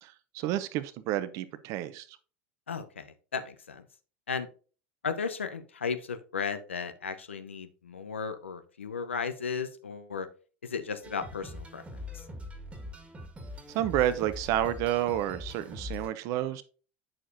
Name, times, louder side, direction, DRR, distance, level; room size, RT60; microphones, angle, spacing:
voice 1, 0.0-2.1 13.7-16.6, right 12 dB, 55° right, 0.6 m, -30 dB
voice 2, 2.7-3.8 4.3-4.5 5.0-10.3 10.6-12.2, left 5 dB, 90° left, 0.7 m, -35 dB
sound 1, 11.0-16.1, left 2 dB, 20° right, 1.7 m, -42 dB
8.6 x 6.6 x 2.6 m
hypercardioid pair, 80°, 6 cm